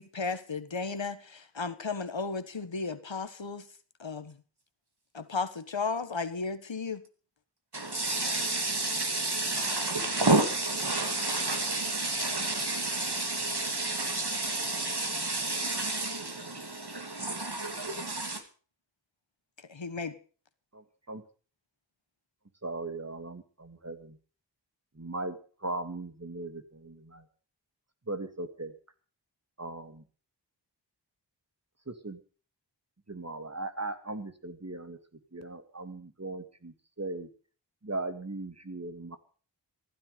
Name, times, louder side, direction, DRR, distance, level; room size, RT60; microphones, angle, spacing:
voice 1, 0.0-3.7 4.0-4.3 5.1-7.0 19.7-20.2, left 4 dB, 85° left, 1.4 m, -34 dB
voice 2, 7.7-18.4, right 2 dB, 60° right, 2.9 m, -30 dB
voice 3, 20.7-21.2 22.6-24.2 25.0-25.4 25.6-27.2 28.1-28.7 29.6-30.0 31.9-32.2 33.1-35.0 35.3-37.3 37.8-39.2, right 2 dB, 35° right, 2.0 m, -38 dB
15.0 x 13.0 x 5.2 m
wide cardioid pair, 45°, 44 cm